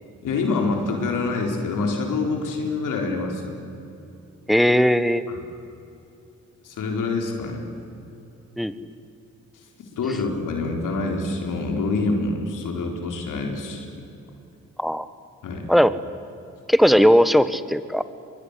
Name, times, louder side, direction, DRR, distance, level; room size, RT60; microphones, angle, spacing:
voice 1, 0.2-3.5 5.3-5.4 6.6-7.7 10.0-13.9 15.4-15.6, left 3 dB, 85° left, 2 dB, 4.3 m, -26 dB
voice 2, 4.5-5.2 8.6-8.7 14.8-15.1 15.7-15.9 16.7-18.0, equal, ahead, 13 dB, 1.4 m, -17 dB
23.5 x 22.5 x 9.9 m, 2.8 s
supercardioid pair, 55°, 31 cm